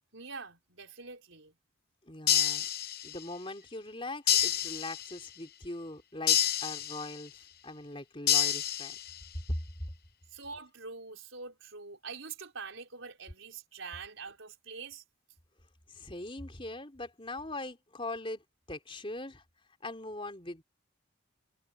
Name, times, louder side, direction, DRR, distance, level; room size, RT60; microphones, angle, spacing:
voice 1, 0.1-1.6 10.3-15.0, right 4 dB, 70° right, 4.6 m, -45 dB
voice 2, 2.0-2.7 3.0-9.0 15.9-19.4 19.8-20.6, left 2 dB, 25° left, 3.8 m, -41 dB
sound 1, 2.3-3.3 4.3-5.3 6.3-7.3 8.3-9.3, left 10 dB, 45° left, 1.1 m, -29 dB
head